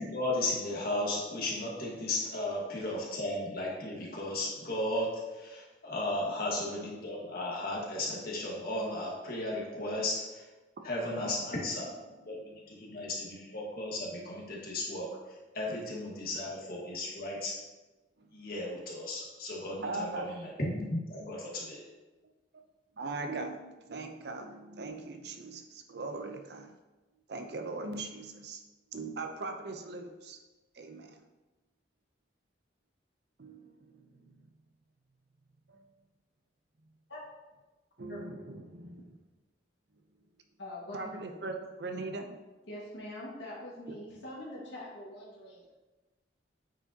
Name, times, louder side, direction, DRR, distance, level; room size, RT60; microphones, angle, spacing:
voice 1, 0.0-10.5 10.8-11.9 12.3-12.4 12.7-15.2 15.5-17.6 18.3-21.9, left 1 dB, 55° left, -3 dB, 1.6 m, -35 dB
voice 2, 19.8-20.3 23.0-26.7 27.3-28.6 28.9-30.4 30.7-31.2 33.4-34.5 35.7-35.8 38.0-39.2 40.9-42.4, right 3 dB, 60° right, 5 dB, 0.6 m, -40 dB
voice 3, 40.6-41.1 42.7-45.7, left 1 dB, 80° left, -6 dB, 1.7 m, -43 dB
8.8 x 4.9 x 2.8 m, 1.1 s
head